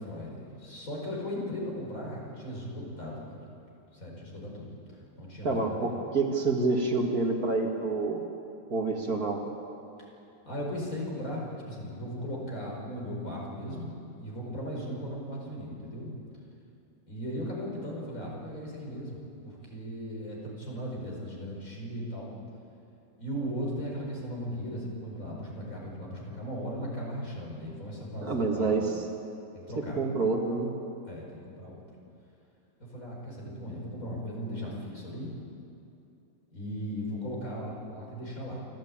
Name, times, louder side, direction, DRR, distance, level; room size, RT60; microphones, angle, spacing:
voice 1, 0.0-3.4 3.9-4.8 5.2-5.9 10.0-10.1 10.5-16.1 17.1-22.3 23.2-28.8 29.5-30.1 31.1-31.8 32.8-35.3 36.5-38.6, equal, 50° left, -3 dB, 5.4 m, -37 dB
voice 2, 5.4-8.2 8.7-9.4 28.2-29.0 29.8-30.7, right 3 dB, 55° right, 2 dB, 2.5 m, -28 dB
28.0 x 13.5 x 8.7 m, 2.7 s
omnidirectional pair, 1.9 m